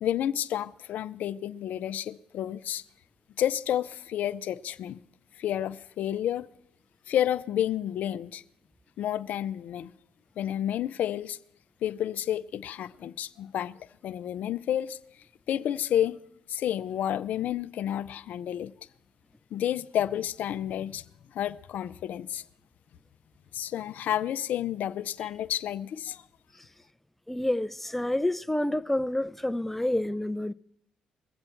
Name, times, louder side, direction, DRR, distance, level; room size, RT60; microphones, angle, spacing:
voice 1, 0.0-2.8 3.4-5.0 5.4-6.5 7.1-8.4 9.0-9.9 10.4-11.4 11.8-13.8 14.0-15.0 15.5-16.2 16.5-18.7 19.5-21.0 21.3-22.4 23.5-26.2, left 11 dB, 70° left, 0.4 m, -30 dB
voice 2, 27.3-30.5, left 1 dB, 5° left, 0.5 m, -28 dB
22.0 x 7.7 x 4.4 m
supercardioid pair, 60°, 3 cm